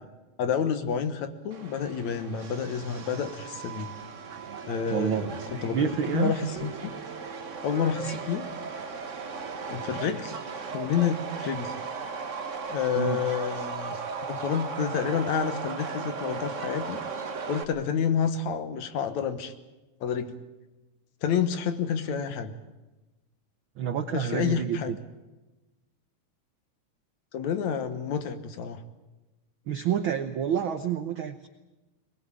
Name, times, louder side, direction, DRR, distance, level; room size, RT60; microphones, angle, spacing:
voice 1, 0.4-3.9 4.7-6.9 7.6-8.5 9.7-10.4 10.7-11.7 12.7-14.0 14.3-17.0 17.5-19.5 20.0-20.3 21.2-22.5 24.1-24.9 27.3-28.8, left 7 dB, 70° left, 10 dB, 2.5 m, -29 dB
Subway metro underground, 1.5-17.6, right 5 dB, 55° right, 0.8 m, -37 dB
voice 2, 4.9-5.3 5.7-6.3 13.0-13.2 23.8-25.0 29.7-31.5, right 9 dB, 90° right, 9 dB, 1.1 m, -28 dB
21.5 x 19.5 x 8.9 m, 1.1 s
omnidirectional pair, 3.5 m